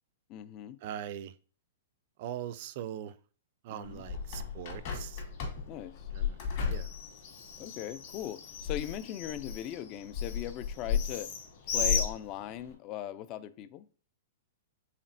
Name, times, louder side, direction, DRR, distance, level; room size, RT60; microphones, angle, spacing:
voice 1, 0.3-0.8 3.7-4.0 5.7-6.1 7.6-11.3 11.7-13.9, left 12 dB, 40° left, 0.3 m, -39 dB
voice 2, 0.8-1.3 2.2-3.2 3.6-5.2 6.1-6.4 6.7-6.9, right 10 dB, 50° right, 0.3 m, -41 dB
Bird, 3.8-12.7, left 6 dB, 55° left, 1.8 m, -35 dB
4.2 x 3.4 x 2.6 m
hypercardioid pair, 120°, 0 cm